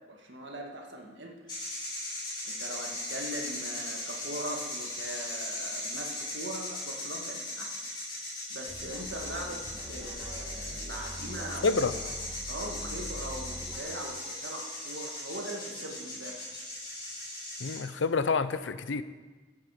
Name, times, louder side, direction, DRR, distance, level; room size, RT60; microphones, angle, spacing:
voice 1, 0.0-1.4 2.4-7.7 8.5-11.8 12.5-16.5, right 1 dB, 80° right, 1 dB, 1.9 m, -41 dB
sound 1, 1.5-17.8, left 1 dB, 25° left, 4.1 m, -38 dB
sound 2, 8.7-13.8, equal, 15° right, 2.7 m, -43 dB
voice 2, 11.6-12.0 17.6-19.0, left 4 dB, 90° left, 13 dB, 0.6 m, -28 dB
15.5 x 8.4 x 5.0 m, 1.3 s
head